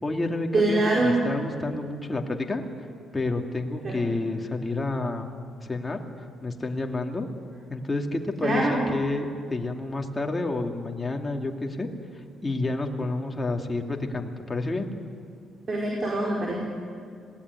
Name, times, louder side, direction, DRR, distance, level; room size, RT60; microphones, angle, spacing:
voice 1, 0.0-2.6 3.1-5.3 5.6-6.0 6.4-7.3 7.7-11.9 12.4-14.9, left 2 dB, 20° left, 2 dB, 2.6 m, -29 dB
voice 2, 0.5-1.2 3.8-4.1 8.4-8.8 15.7-16.5, right 2 dB, 40° right, -2 dB, 4.7 m, -24 dB
26.5 x 19.0 x 9.6 m, 2.2 s
cardioid pair, 90°, 0 cm